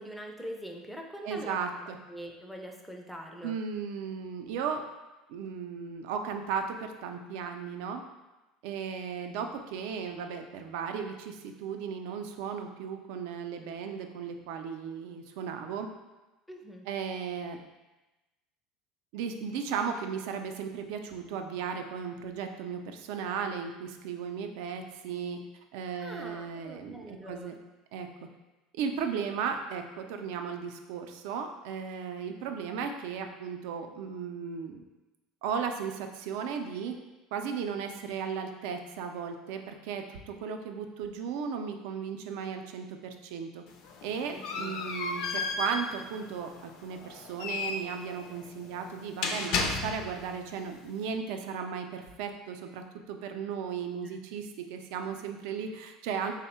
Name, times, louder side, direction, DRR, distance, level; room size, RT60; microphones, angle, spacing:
voice 1, 0.0-1.6 1.9-3.5 16.5-16.9 26.0-27.5 44.3-44.7 54.0-54.2, equal, ahead, 1 dB, 0.4 m, -43 dB
voice 2, 1.2-2.0 3.4-4.8 5.3-8.0 8.6-15.9 16.9-17.6 19.1-25.4 25.7-27.5 27.9-28.1 28.8-34.8 35.4-36.9 37.3-43.6 44.0-56.3, right 6 dB, 75° right, 5 dB, 0.4 m, -36 dB
sound 1, 43.7-50.3, left 4 dB, 65° left, 0.4 m, -34 dB
3.5 x 2.1 x 4.2 m, 1.1 s
cardioid pair, 140°, 0 cm